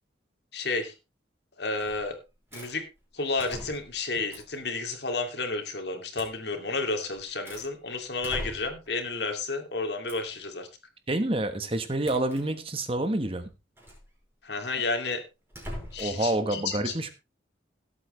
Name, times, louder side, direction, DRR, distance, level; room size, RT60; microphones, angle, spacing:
voice 1, 0.5-0.9 1.6-2.1 2.5-2.8 3.1-10.7 14.4-15.2 15.9-16.9, left 3 dB, 65° left, 6 dB, 2.5 m, -31 dB
sound 1, 1.8-2.1 2.5-2.7 3.4-4.0 4.3-4.6 6.1-6.4 6.9-7.7 8.2-8.9 10.1-10.3 12.0-12.5 13.8-14.1 15.5-16.2, equal, 15° right, 5.4 m, -41 dB
voice 2, 11.1-13.5 16.0-17.1, right 1 dB, 30° right, 9 dB, 1.2 m, -28 dB
17.0 x 8.3 x 3.2 m, 0.27 s
head